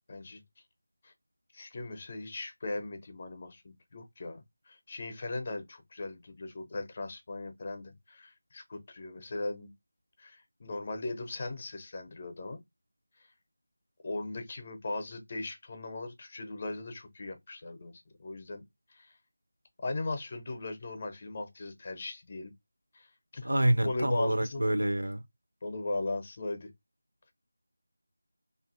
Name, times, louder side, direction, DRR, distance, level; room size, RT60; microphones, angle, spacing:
voice 1, 0.1-0.4 1.0-1.1 1.5-9.7 10.2-12.6 14.0-18.6 18.9-19.1 19.8-22.5 22.9-23.5 23.8-24.6 25.6-26.7, left 2 dB, 25° left, 0.7 m, -38 dB
voice 2, 23.4-25.2, right 1 dB, 60° right, 0.6 m, -27 dB
2.6 x 2.4 x 2.6 m
figure-of-eight pair, 165°, 0 cm